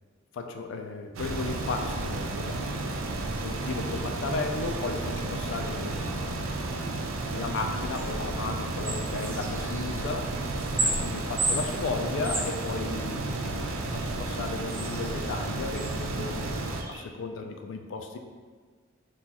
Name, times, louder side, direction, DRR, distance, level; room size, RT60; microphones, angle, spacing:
voice 1, 0.3-2.6 3.4-6.4 7.3-10.3 10.7-13.7 14.0-16.5 16.9-18.2, left 3 dB, 70° left, 5 dB, 0.3 m, -35 dB
sound 1, 1.2-16.8, right 2 dB, 90° right, 0.4 m, -32 dB
sound 2, 7.9-17.0, right 2 dB, 15° right, 0.3 m, -36 dB
2.9 x 2.3 x 3.8 m, 1.5 s
head